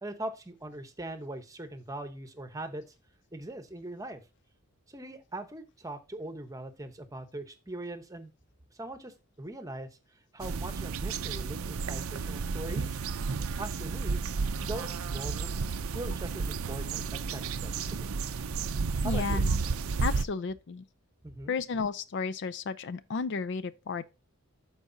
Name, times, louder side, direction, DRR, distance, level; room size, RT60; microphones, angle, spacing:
voice 1, 0.0-2.8 3.3-4.2 4.9-8.3 8.8-9.9 10.3-13.0 13.6-14.2 14.6-15.6 15.9-18.1 19.0-19.4 21.2-21.6, right 1 dB, 15° right, 0.9 m, -41 dB
sound 1, 10.4-20.2, right 4 dB, 70° right, 0.5 m, -32 dB
voice 2, 19.0-19.6 20.0-20.8 21.5-24.0, left 5 dB, 55° left, 0.4 m, -33 dB
12.5 x 4.7 x 2.7 m
head